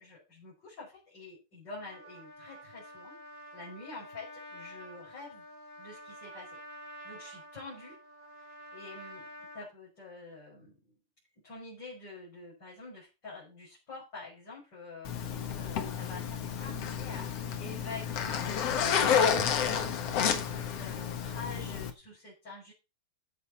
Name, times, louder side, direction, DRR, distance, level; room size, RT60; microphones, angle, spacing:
voice 1, 0.0-3.2 3.5-5.4 5.8-6.6 7.0-8.0 8.4-10.9 11.4-17.3 17.6-18.5 19.0-22.7, left 3 dB, 25° left, -7 dB, 6.3 m, -47 dB
Trumpet, 1.7-9.7, equal, 25° right, 5.3 m, -49 dB
Zipper (clothing), 15.0-21.9, left 7 dB, 70° left, 1.5 m, -30 dB
13.5 x 8.1 x 4.3 m, 0.27 s
omnidirectional pair, 5.0 m